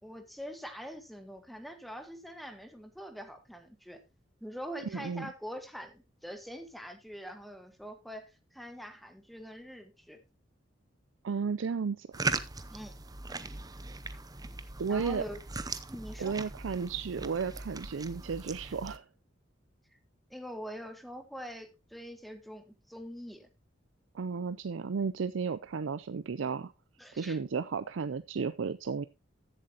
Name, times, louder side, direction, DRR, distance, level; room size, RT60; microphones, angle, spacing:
voice 1, 0.0-4.0 4.4-10.2 12.7-12.9 14.9-15.4 15.9-16.3 20.3-23.5 27.0-27.4, equal, ahead, 1.4 m, -44 dB
voice 2, 4.9-5.3 11.2-12.1 14.8-15.2 16.2-19.0 24.1-26.7 27.1-29.0, right 5 dB, 80° right, 0.5 m, -33 dB
sound 1, 12.1-19.0, right 3 dB, 20° right, 0.6 m, -39 dB
14.5 x 7.5 x 2.9 m
head